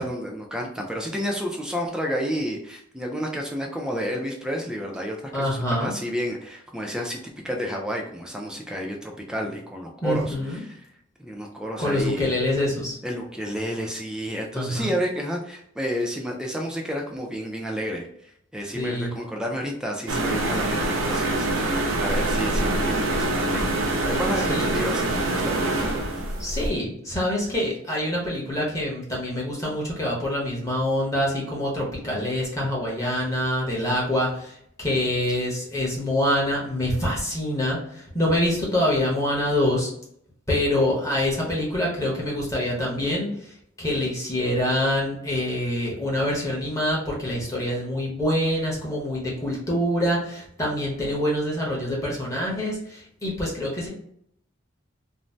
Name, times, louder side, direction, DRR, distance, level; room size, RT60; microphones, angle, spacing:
voice 1, 0.0-10.3 10.6-10.9 11.2-12.3 13.0-26.3, equal, 5° right, 0 dB, 0.3 m, -31 dB
voice 2, 5.3-5.9 10.0-10.6 11.8-13.0 14.5-14.9 18.7-19.1 24.5-24.8 26.4-39.9 40.5-53.9, left 1 dB, 15° left, -4 dB, 0.8 m, -25 dB
sound 1, 20.1-26.7, right 2 dB, 80° right, 0.5 m, -25 dB
2.6 x 2.0 x 3.1 m, 0.71 s
head